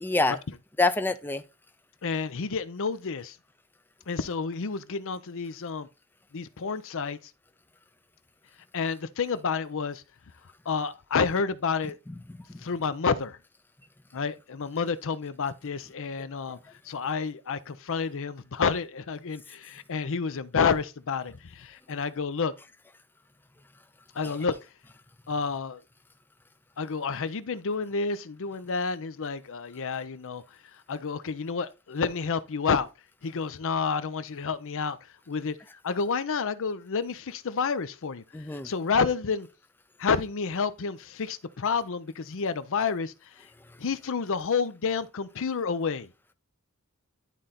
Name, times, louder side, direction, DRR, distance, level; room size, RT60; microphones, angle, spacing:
voice 1, 0.0-0.4 0.8-1.4 12.5-12.6 24.2-24.3 38.3-38.7, left 3 dB, 10° left, 0.5 m, -26 dB
voice 2, 2.0-3.4 4.1-5.9 6.3-7.3 8.7-10.0 10.7-12.0 12.6-13.4 14.1-22.5 24.1-24.6 25.3-25.8 26.8-32.9 33.2-35.6 35.8-39.5 40.0-43.5 43.8-46.1, left 5 dB, 65° left, 0.6 m, -30 dB
11.0 x 3.8 x 4.1 m
head